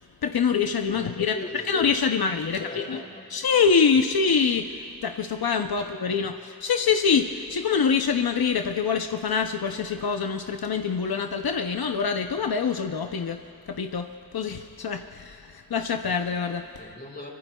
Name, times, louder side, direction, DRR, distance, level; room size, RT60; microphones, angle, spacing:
voice 1, 0.2-1.3 1.7-3.0 3.3-13.4 13.7-14.1 14.3-16.7, left 6 dB, 85° left, 5 dB, 0.6 m, -25 dB
voice 2, 0.9-1.7 2.4-3.5 5.7-5.9 16.8-17.3, left 2 dB, 25° left, -1 dB, 3.3 m, -40 dB
27.0 x 23.5 x 2.3 m, 2.6 s
wide cardioid pair, 50°, 35 cm